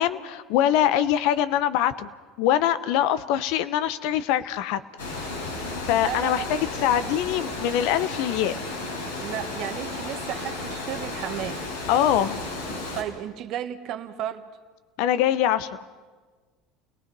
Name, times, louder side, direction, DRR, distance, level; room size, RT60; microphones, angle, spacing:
voice 1, 0.0-2.1 2.4-4.8 5.9-8.5 11.9-12.4 15.0-15.8, left 11 dB, 65° left, 13 dB, 0.9 m, -23 dB
Water, 5.0-13.0, left 2 dB, 90° left, 4.2 m, -33 dB
voice 2, 6.0-6.6 9.2-11.6 13.0-14.5, right 11 dB, 55° right, 8 dB, 1.4 m, -33 dB
29.0 x 19.0 x 5.5 m, 1.4 s
hypercardioid pair, 75°, 0 cm